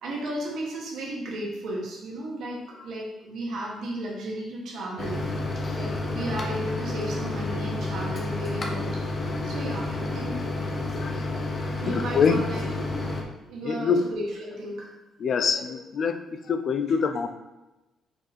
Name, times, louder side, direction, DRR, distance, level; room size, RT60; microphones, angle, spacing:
voice 1, 0.0-5.2 5.7-9.0 9.4-10.4 11.8-14.9, right 1 dB, 75° right, -2 dB, 1.6 m, -34 dB
Microwave oven, 5.0-13.2, left 2 dB, 35° left, 1.0 m, -30 dB
voice 2, 11.9-12.4 13.6-14.1 15.2-17.3, left 5 dB, 55° left, 8 dB, 0.5 m, -25 dB
5.3 x 4.3 x 4.2 m, 1.0 s
cardioid pair, 90°, 0 cm